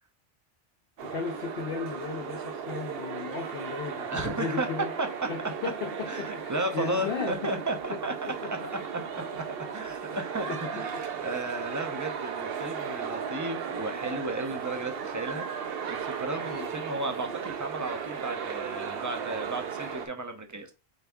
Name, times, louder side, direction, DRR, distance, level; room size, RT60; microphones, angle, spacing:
voice 1, 1.0-5.0 5.3-7.5 7.9-8.0 8.3-8.7 9.0-9.4 10.3-11.4 16.4-16.7, left 5 dB, 65° left, 0.8 m, -36 dB
sound 1, 1.0-20.1, right 7 dB, 65° right, 0.9 m, -36 dB
voice 2, 4.1-4.7 5.0-5.1 6.1-8.1 8.6-15.4 15.9-20.7, right 2 dB, 20° right, 0.5 m, -34 dB
4.0 x 3.5 x 3.5 m
omnidirectional pair, 1.1 m